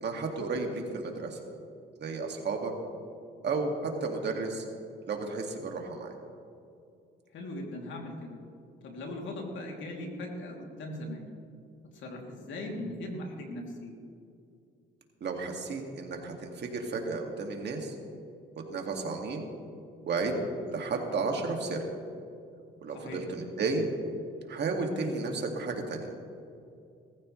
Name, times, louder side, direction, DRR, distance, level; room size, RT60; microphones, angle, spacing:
voice 1, 0.0-1.4 2.0-2.7 3.4-4.7 5.1-6.1 15.2-17.9 18.6-19.4 20.1-20.3 20.7-21.8 22.8-23.9 24.5-26.1, right 3 dB, 60° right, 2 dB, 2.2 m, -33 dB
voice 2, 7.3-8.4 8.8-11.2 11.9-14.0 22.9-23.2, left 1 dB, 70° left, 0 dB, 3.0 m, -39 dB
20.0 x 14.5 x 3.3 m, 2.5 s
cardioid pair, 90°, 20 cm